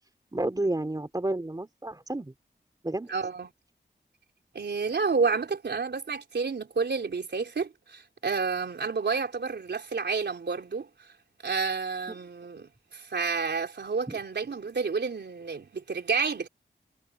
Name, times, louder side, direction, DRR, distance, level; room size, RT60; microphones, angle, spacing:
voice 1, 0.3-2.3 2.8-3.1 14.1-14.2, right 1 dB, 20° right, 2.9 m, -31 dB
voice 2, 3.1-3.5 4.5-10.9 11.4-16.5, right 5 dB, 80° right, 3.9 m, -30 dB
wide cardioid pair, 65°, 18 cm